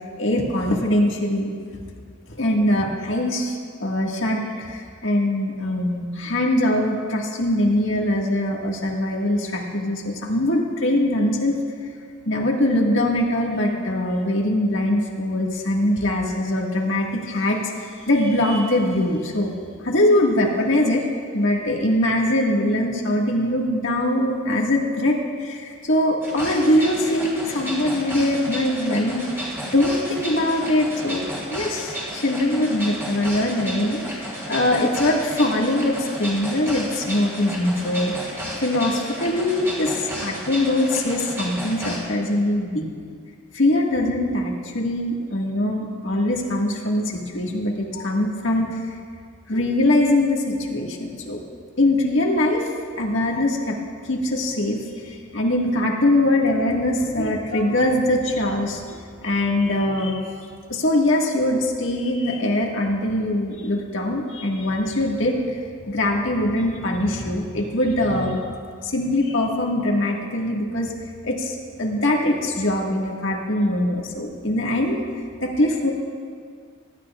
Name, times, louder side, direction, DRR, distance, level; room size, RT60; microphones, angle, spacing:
voice 1, 0.2-1.5 2.3-11.6 12.3-19.5 19.8-21.0 21.3-29.5 29.7-38.1 38.6-42.9 43.5-48.8 49.5-51.4 51.8-52.7 53.0-53.8 54.0-59.0 59.2-60.2 60.7-68.5 68.8-70.9 71.2-75.0 75.4-75.9, left 1 dB, 65° left, -1 dB, 1.8 m, -22 dB
sound 1, 26.2-42.0, equal, 10° right, 3.3 m, -32 dB
22.5 x 12.5 x 2.5 m, 2.1 s
head